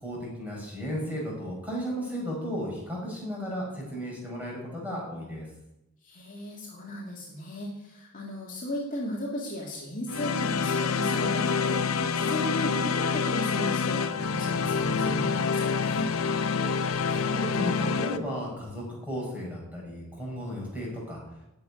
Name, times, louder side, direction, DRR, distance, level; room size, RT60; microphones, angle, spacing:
voice 1, 0.0-5.5 17.1-21.2, equal, 5° right, -4 dB, 5.3 m, -34 dB
voice 2, 6.0-16.1, left 1 dB, 35° left, -3 dB, 2.4 m, -36 dB
sound 1, 10.1-18.2, left 5 dB, 70° left, 0.7 m, -27 dB
11.0 x 7.0 x 9.5 m, 0.89 s
head